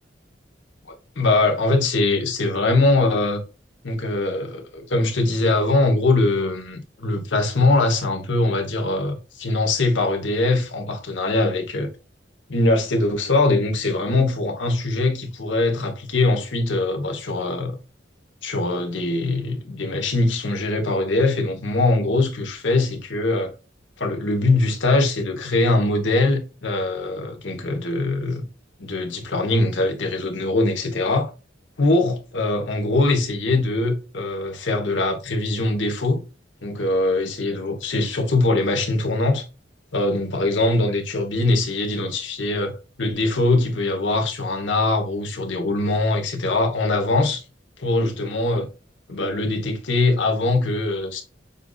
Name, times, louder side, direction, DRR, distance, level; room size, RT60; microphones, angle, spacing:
voice 1, 0.9-3.4 3.8-11.9 12.5-17.8 18.4-23.5 24.0-28.5 28.8-31.3 31.8-36.2 36.6-39.5 39.9-47.4 47.8-48.7 49.1-51.2, left 2 dB, 80° left, 1.2 m, -22 dB
6.8 x 2.6 x 2.3 m
head